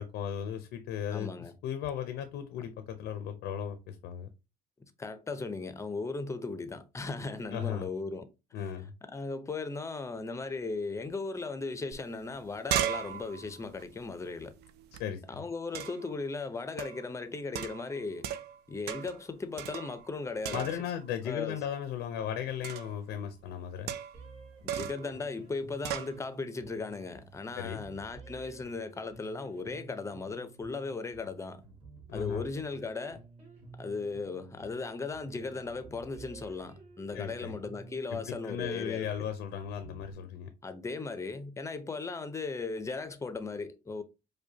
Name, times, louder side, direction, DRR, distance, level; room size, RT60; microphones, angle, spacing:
voice 1, 0.0-4.3 7.5-7.9 8.5-8.9 15.0-15.4 20.5-23.9 27.6-27.9 32.1-32.4 37.1-37.5 38.1-40.5, left 9 dB, 85° left, 0.6 m, -36 dB
voice 2, 1.1-1.5 5.0-8.3 8.6-8.7 9.1-14.5 15.3-18.3 18.7-20.7 21.3-21.6 24.6-31.6 32.1-33.2 33.8-39.3 40.6-44.0, left 3 dB, 15° left, 0.5 m, -37 dB
sound 1, 11.9-12.0 12.3-15.0 15.7-16.1 16.8-17.1 17.5-18.6 18.9-19.2 19.6-20.2 20.4-21.0 22.6-23.0 23.9-24.3 24.7-25.1 25.8-26.1, right 10 dB, 75° right, 0.4 m, -36 dB
sound 2, 24.1-40.1, right 4 dB, 35° right, 1.8 m, -52 dB
4.9 x 2.2 x 2.7 m
cardioid pair, 110°, 17 cm